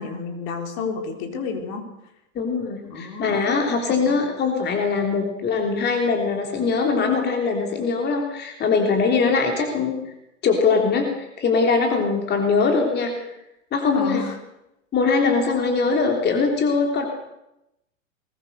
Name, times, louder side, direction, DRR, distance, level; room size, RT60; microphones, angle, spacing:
voice 1, 0.0-1.8 2.8-3.7 4.1-4.2 13.9-14.4, left 4 dB, 45° left, 5 dB, 4.0 m, -31 dB
voice 2, 2.3-10.0 10.4-13.1 13.7-14.2 14.9-17.1, left 4 dB, 25° left, 3 dB, 3.4 m, -22 dB
21.0 x 19.5 x 6.7 m, 0.87 s
hypercardioid pair, 110°, 39 cm